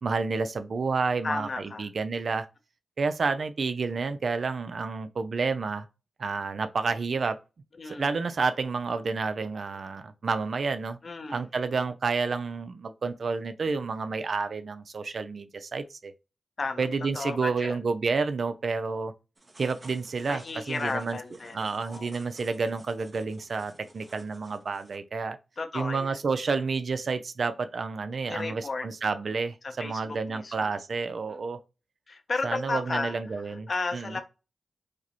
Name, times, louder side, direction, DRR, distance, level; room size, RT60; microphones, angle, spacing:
voice 1, 0.0-2.5 3.0-5.9 6.2-7.4 7.9-11.0 11.3-16.1 16.8-19.1 19.6-21.2 21.5-25.4 25.7-31.6 32.4-34.2, right 4 dB, 70° right, 0.4 m, -30 dB
voice 2, 1.2-1.9 7.8-8.1 11.0-11.4 16.6-16.9 17.1-17.8 20.3-22.2 25.6-26.2 28.3-28.9 29.6-30.8 31.3-31.4 32.1-34.2, left 3 dB, 55° left, 0.7 m, -34 dB
sound 1, 19.4-25.0, right 2 dB, 40° right, 0.8 m, -54 dB
4.8 x 2.0 x 2.9 m
cardioid pair, 55°, 0 cm